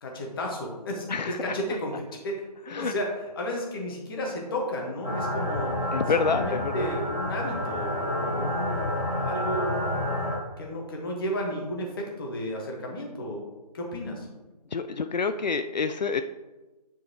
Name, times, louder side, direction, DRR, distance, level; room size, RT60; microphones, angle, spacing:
voice 1, 0.0-5.7 6.3-13.4 13.7-14.3, equal, 35° left, 0 dB, 1.4 m, -33 dB
sound 1, 5.0-10.4, left 1 dB, 5° left, 0.4 m, -29 dB
voice 2, 5.9-6.9 14.7-16.2, left 5 dB, 85° left, 9 dB, 0.5 m, -27 dB
9.5 x 4.5 x 3.0 m, 1.1 s
figure-of-eight pair, 150°, 21 cm